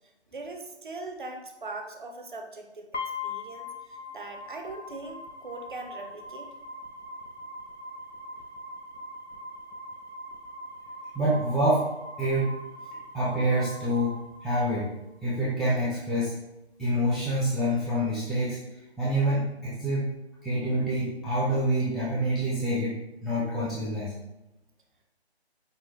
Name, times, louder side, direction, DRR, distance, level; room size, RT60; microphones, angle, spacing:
voice 1, 0.3-6.5, right 2 dB, 50° right, 4 dB, 0.5 m, -41 dB
sound 1, 2.9-14.9, left 2 dB, 85° left, 0.9 m, -41 dB
voice 2, 11.1-11.9 12.2-12.5 13.1-14.1 14.4-14.9 15.2-16.3 16.8-18.6 19.0-20.1 20.4-23.0 23.2-24.1, right 1 dB, ahead, -11 dB, 0.3 m, -26 dB
5.5 x 2.1 x 2.9 m, 0.96 s
figure-of-eight pair, 160°, 33 cm